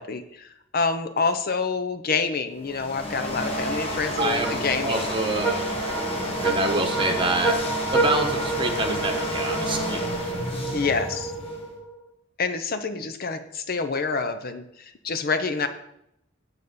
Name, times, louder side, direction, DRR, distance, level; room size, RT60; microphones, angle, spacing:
voice 1, 0.0-5.1 10.7-11.3 12.4-15.7, left 4 dB, 50° left, 9 dB, 0.7 m, -27 dB
sound 1, 2.5-11.7, equal, 30° left, 1.6 m, -31 dB
voice 2, 4.2-7.6 7.9-10.1, right 2 dB, 25° right, 3 dB, 1.2 m, -27 dB
sound 2, 4.4-12.0, right 2 dB, 10° left, 0.7 m, -29 dB
8.8 x 4.0 x 6.7 m, 0.79 s
head